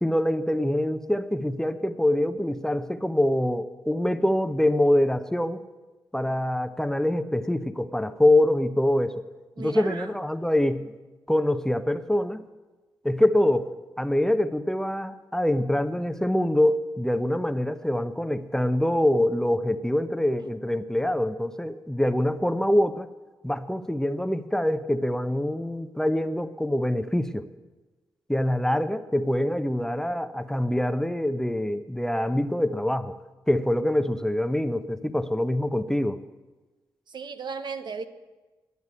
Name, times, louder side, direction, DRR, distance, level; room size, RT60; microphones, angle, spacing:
voice 1, 0.0-5.6 6.1-9.2 9.6-10.9 11.3-12.4 13.0-13.7 14.0-23.1 23.4-27.4 28.3-33.1 33.5-36.2, left 1 dB, 5° left, 11 dB, 0.8 m, -24 dB
voice 2, 9.6-10.1 37.1-38.0, right 5 dB, 60° right, 9 dB, 1.0 m, -35 dB
11.0 x 8.2 x 9.6 m, 1.2 s
supercardioid pair, 50°, 8 cm